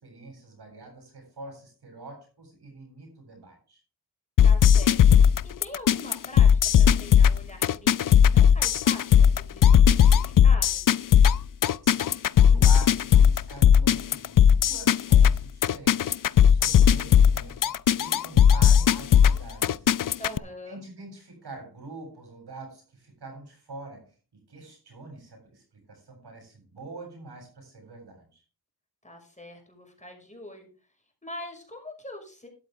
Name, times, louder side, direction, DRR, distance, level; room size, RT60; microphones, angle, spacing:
voice 1, 0.0-3.8 11.8-12.1 12.4-16.2 16.5-19.9 20.7-24.1 24.5-28.4, right 3 dB, 85° right, 1 dB, 7.9 m, -45 dB
sound 1, 4.4-20.4, left 8 dB, 55° left, 0.5 m, -18 dB
voice 2, 4.4-5.1 5.4-11.0 20.2-20.8 29.0-30.7 31.2-32.5, left 1 dB, 20° left, 3 dB, 5.7 m, -43 dB
12.5 x 11.5 x 3.6 m, 0.36 s
cardioid pair, 55°, 39 cm